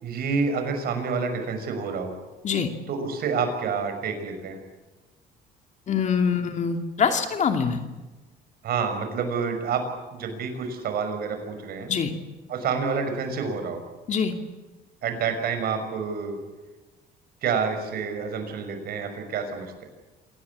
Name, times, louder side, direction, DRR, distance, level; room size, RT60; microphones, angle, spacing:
voice 1, 0.0-2.1 2.9-4.6 8.6-9.8 10.1-11.9 12.5-13.8 15.0-16.4 17.4-19.9, right 5 dB, 65° right, 6 dB, 6.2 m, -28 dB
voice 2, 5.9-7.8 11.9-12.1 14.1-14.3, left 6 dB, 45° left, 5 dB, 2.6 m, -24 dB
27.0 x 19.0 x 8.5 m, 1.2 s
cardioid pair, 110°, 17 cm